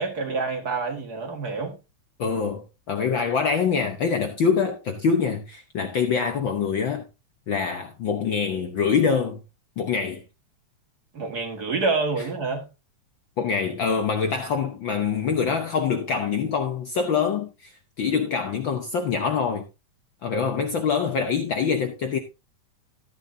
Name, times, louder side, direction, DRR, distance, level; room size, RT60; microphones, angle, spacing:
voice 1, 0.0-1.8 11.1-12.7, right 4 dB, 40° right, 1.6 m, -27 dB
voice 2, 2.2-7.0 7.5-9.4 9.8-10.2 13.4-17.7 18.0-19.6 20.2-22.2, left 6 dB, 75° left, 1.1 m, -25 dB
13.5 x 9.1 x 2.7 m
omnidirectional pair, 3.6 m